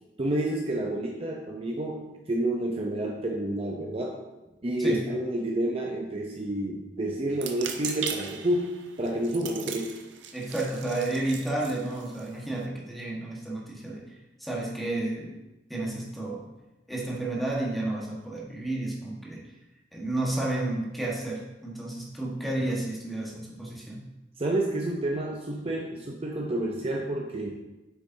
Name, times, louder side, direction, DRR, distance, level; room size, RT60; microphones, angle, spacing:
voice 1, 0.2-4.2 4.6-10.0 24.4-27.5, right 1 dB, 30° right, 0 dB, 0.6 m, -29 dB
sound 1, 7.3-12.7, right 7 dB, 80° right, 0.6 m, -39 dB
voice 2, 10.3-14.0 14.4-15.4 15.7-16.5 16.9-19.4 19.9-24.0, right 2 dB, ahead, -4 dB, 1.4 m, -31 dB
8.2 x 6.4 x 2.7 m, 1.0 s
head